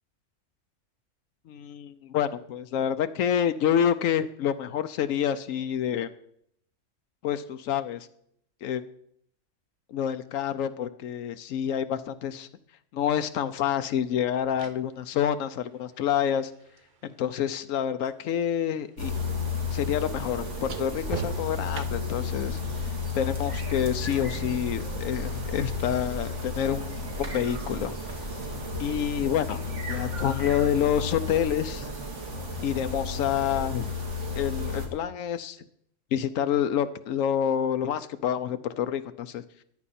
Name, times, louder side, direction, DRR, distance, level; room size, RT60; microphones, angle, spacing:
voice 1, 1.5-6.1 7.2-8.1 8.6-8.8 9.9-12.5 12.9-16.5 17.0-19.1 19.7-22.6 23.1-28.0 28.8-29.6 29.9-31.9 32.6-33.9 34.4-35.6 36.1-39.4, left 9 dB, 90° left, 10 dB, 1.0 m, -28 dB
sound 1, 13.0-13.1 14.2-18.3 18.5-22.3 24.3-24.5, right 8 dB, 45° right, 0.7 m, -43 dB
sound 2, 19.0-34.9, left 3 dB, 65° right, 2.5 m, -32 dB
14.0 x 10.0 x 4.3 m, 0.68 s
omnidirectional pair, 1.3 m